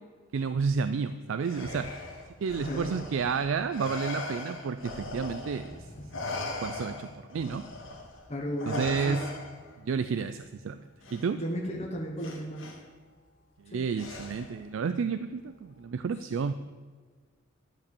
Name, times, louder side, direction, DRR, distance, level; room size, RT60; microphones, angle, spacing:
voice 1, 0.3-1.9 2.4-5.9 6.6-7.6 8.7-9.2 9.8-10.8 11.1-11.4 13.7-16.5, right 5 dB, 70° right, 11 dB, 0.4 m, -31 dB
Respiratory sounds, 1.4-5.8 6.1-9.8 11.0-11.2 12.2-12.8 14.0-14.6, left 2 dB, 70° left, 1.9 m, -39 dB
voice 2, 2.6-3.0 5.7-6.3 8.3-9.3 11.3-12.7 13.7-13.9, equal, 30° left, 0 dB, 0.9 m, -35 dB
11.0 x 5.2 x 7.0 m, 1.5 s
head